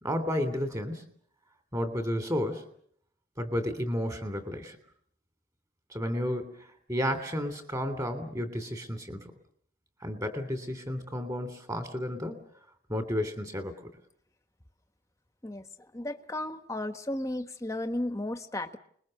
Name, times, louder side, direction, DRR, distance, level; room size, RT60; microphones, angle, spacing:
voice 1, 0.0-1.0 1.7-2.7 3.4-4.8 5.9-9.3 10.0-12.4 12.9-13.7, equal, 20° right, 9 dB, 3.2 m, -32 dB
voice 2, 15.9-18.8, left 1 dB, 15° left, 8 dB, 1.4 m, -34 dB
29.5 x 21.5 x 6.7 m, 0.64 s
head